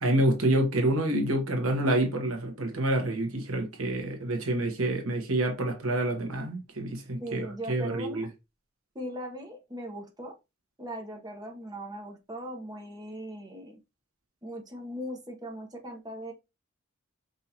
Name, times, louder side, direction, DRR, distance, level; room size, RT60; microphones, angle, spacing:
voice 1, 0.0-8.3, right 1 dB, 80° right, 1.2 m, -27 dB
voice 2, 7.2-8.3 8.9-10.3 10.8-13.8 14.4-16.3, right 1 dB, 20° right, 1.0 m, -39 dB
5.3 x 2.7 x 2.9 m
head